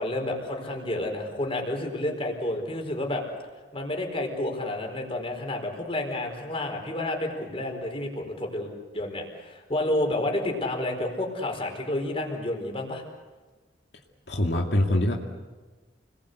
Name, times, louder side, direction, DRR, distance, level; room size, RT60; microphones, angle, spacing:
voice 1, 0.0-3.2 3.7-13.0, left 1 dB, 35° left, 2 dB, 4.7 m, -30 dB
voice 2, 14.3-15.1, left 1 dB, 70° left, 0 dB, 2.3 m, -23 dB
29.5 x 21.5 x 8.2 m, 1.3 s
head